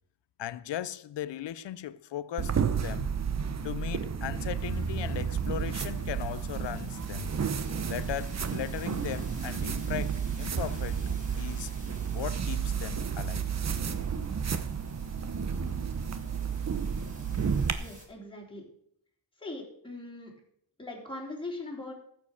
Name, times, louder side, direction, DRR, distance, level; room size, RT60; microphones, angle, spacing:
voice 1, 0.4-3.2 3.6-7.4 7.9-11.0 11.4-11.7 12.1-13.5, left 11 dB, 65° left, 0.7 m, -38 dB
sound 1, 2.4-17.7, right 6 dB, 35° right, 1.0 m, -31 dB
sound 2, 4.6-18.0, right 1 dB, 15° right, 4.7 m, -54 dB
voice 2, 17.8-18.6 19.4-20.3 20.8-21.9, left 2 dB, 10° left, 3.7 m, -40 dB
14.0 x 7.7 x 6.5 m
wide cardioid pair, 135°, 45 cm